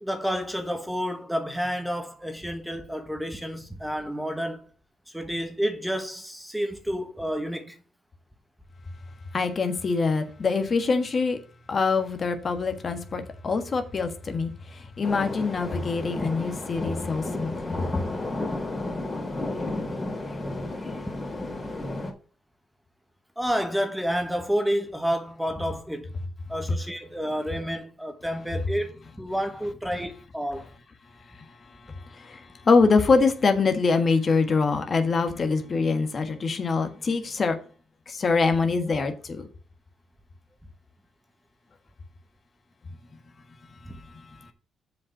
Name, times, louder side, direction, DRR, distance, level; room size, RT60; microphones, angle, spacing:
voice 1, 0.0-4.6 5.1-7.7 23.4-26.1 26.5-30.6, equal, 5° right, 1.3 m, -30 dB
voice 2, 9.3-11.4 11.7-14.5 15.0-17.5 32.7-37.5 38.2-39.4, left 4 dB, 40° left, 1.5 m, -24 dB
sound 1, 15.0-22.1, left 2 dB, 15° left, 3.0 m, -32 dB
7.2 x 5.2 x 6.0 m
cardioid pair, 90°, 0 cm